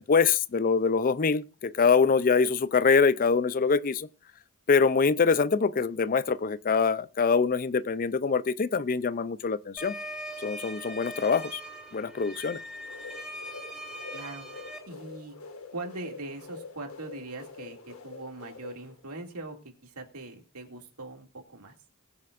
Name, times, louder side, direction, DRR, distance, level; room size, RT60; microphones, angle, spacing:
voice 1, 0.0-4.1 4.7-9.9 10.4-11.6 11.9-12.6, left 5 dB, 40° left, 0.4 m, -24 dB
sound 1, 9.8-14.8, equal, ahead, 3.9 m, -41 dB
sound 2, 12.7-19.4, left 4 dB, 65° left, 1.8 m, -46 dB
voice 2, 14.1-15.4 15.7-19.6 19.8-21.7, right 2 dB, 85° right, 2.4 m, -41 dB
22.0 x 7.6 x 2.5 m
head